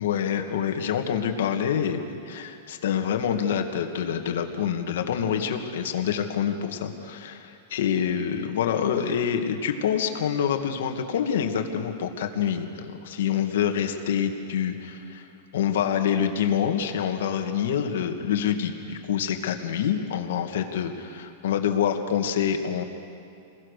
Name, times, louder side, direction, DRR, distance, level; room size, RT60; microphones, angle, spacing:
voice 1, 0.0-2.0 2.3-15.3 15.5-22.8, left 8 dB, 65° left, 4 dB, 2.0 m, -26 dB
29.0 x 21.0 x 6.7 m, 2.5 s
supercardioid pair, 180°, 0 cm